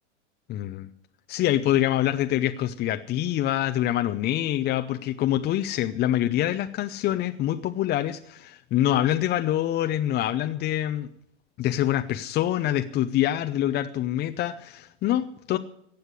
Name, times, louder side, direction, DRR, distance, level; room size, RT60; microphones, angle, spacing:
voice 1, 0.5-0.9 1.3-11.1 11.6-15.6, left 12 dB, 30° left, 8 dB, 0.6 m, -25 dB
15.5 x 8.0 x 9.6 m, 0.74 s
hypercardioid pair, 105°, 36 cm